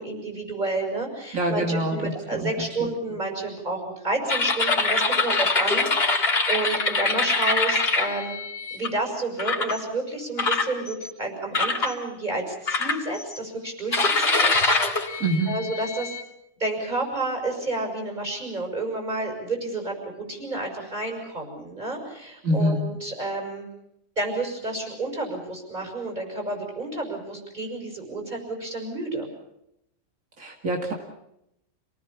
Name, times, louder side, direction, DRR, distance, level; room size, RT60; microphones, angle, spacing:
voice 1, 0.0-8.3 8.7-14.5 14.8-16.2 16.6-23.7 24.2-29.3, right 2 dB, 35° right, 2 dB, 6.3 m, -30 dB
voice 2, 1.3-2.1 2.4-2.9 15.2-15.5 22.4-22.8 30.4-30.9, right 1 dB, 80° right, 1 dB, 2.8 m, -25 dB
sound 1, 4.3-8.9 9.4-9.8 10.4-11.1 11.5-11.9 12.7-13.4 13.9-16.2, left 3 dB, 50° left, 2.4 m, -24 dB
28.0 x 19.0 x 7.2 m, 0.81 s
omnidirectional pair, 1.4 m